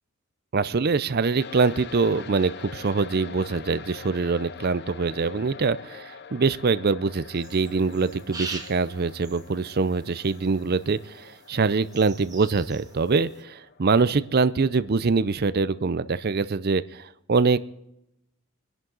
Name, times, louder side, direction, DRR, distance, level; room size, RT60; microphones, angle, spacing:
voice 1, 0.5-6.0 6.3-17.6, right 4 dB, 45° right, 15 dB, 0.5 m, -24 dB
sound 1, 1.4-16.0, left 6 dB, 50° left, 0.7 m, -45 dB
sound 2, 7.3-13.4, right 3 dB, 15° right, 1.5 m, -43 dB
25.5 x 11.0 x 3.9 m, 0.83 s
head